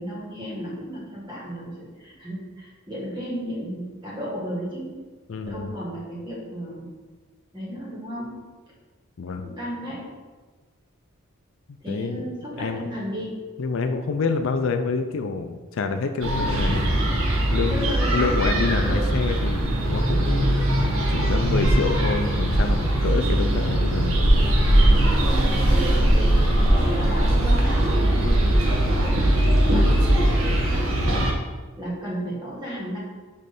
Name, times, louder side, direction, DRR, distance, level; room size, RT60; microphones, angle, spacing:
voice 1, 0.0-5.0 5.5-6.9 7.5-8.4 9.4-10.1 11.8-13.4 17.7-18.4 18.8-19.1 25.2-31.3 31.8-33.0, equal, 20° right, -5 dB, 1.9 m, -34 dB
voice 2, 5.3-5.7 9.2-9.5 11.9-12.2 12.6-12.8 13.6-16.8 17.5-20.5 21.1-24.1, left 4 dB, 60° left, 6 dB, 0.4 m, -27 dB
sound 1, 16.2-31.3, right 1 dB, 65° right, 1.1 m, -20 dB
6.4 x 3.2 x 5.3 m, 1.4 s
head